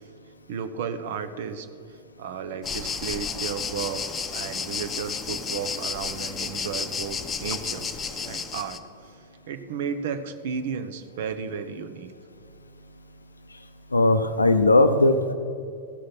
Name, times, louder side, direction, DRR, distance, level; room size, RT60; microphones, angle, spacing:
voice 1, 0.5-1.7 2.2-4.0 4.3-8.8 9.5-12.1, right 6 dB, 55° right, 10 dB, 0.7 m, -33 dB
sound 1, 2.6-8.8, left 5 dB, 20° left, 0.8 m, -32 dB
voice 2, 13.9-15.3, left 2 dB, 80° left, 9 dB, 0.5 m, -18 dB
15.0 x 6.4 x 5.9 m, 2.4 s
figure-of-eight pair, 90°, 0 cm